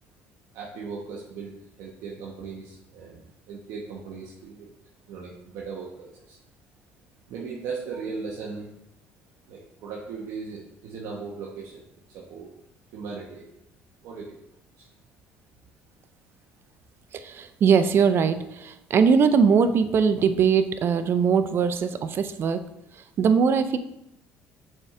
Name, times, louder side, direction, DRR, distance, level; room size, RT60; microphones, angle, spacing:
voice 1, 0.5-1.5 1.8-4.7 5.1-6.4 7.3-8.7 9.5-11.8 12.1-12.5 12.9-13.4 14.0-14.4 14.8-14.9, right 5 dB, 70° right, -3 dB, 1.0 m, -37 dB
voice 2, 17.1-22.6 23.0-23.8, right 6 dB, 50° right, 11 dB, 0.5 m, -21 dB
6.5 x 4.3 x 3.7 m, 0.84 s
supercardioid pair, 85°, 5 cm